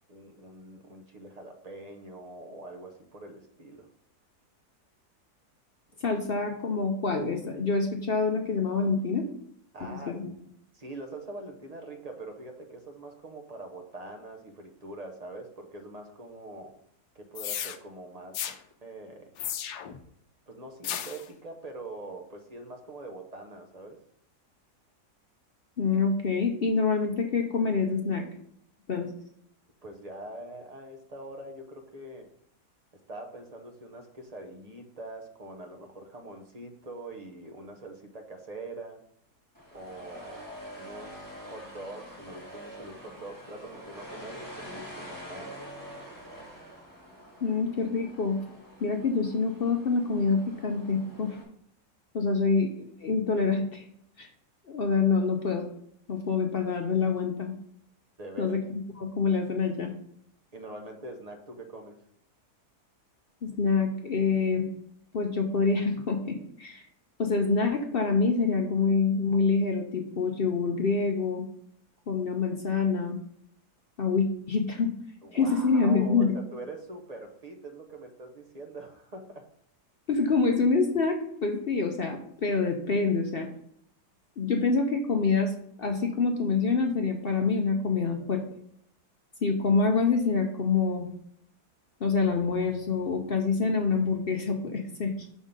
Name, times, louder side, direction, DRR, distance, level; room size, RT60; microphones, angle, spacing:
voice 1, 0.1-3.9 9.7-10.2 10.7-16.8 17.1-19.3 20.5-24.0 28.9-29.0 29.8-32.3 33.1-39.0 39.7-45.7 58.2-58.6 60.5-62.0 75.2-79.5, right 2 dB, 35° right, 4 dB, 0.7 m, -43 dB
voice 2, 6.0-9.2 9.8-10.3 25.8-28.3 28.9-29.1 47.4-48.4 48.8-51.4 52.1-53.8 54.2-54.3 54.7-55.7 56.1-57.5 58.4-58.6 59.0-59.9 63.4-64.7 65.1-66.8 67.2-71.4 72.1-73.2 74.0-74.9 75.3-76.4 80.1-83.5 84.4-85.5 85.8-88.4 89.4-91.1 92.0-95.1, left 4 dB, 55° left, 3 dB, 0.7 m, -26 dB
sound 1, 17.4-17.8 18.3-18.6 19.4-20.0 20.8-21.3, left 10 dB, 80° left, 1.1 m, -34 dB
sound 2, 39.5-51.4, equal, 10° right, 1.6 m, -46 dB
6.3 x 3.7 x 5.3 m, 0.69 s
omnidirectional pair, 1.7 m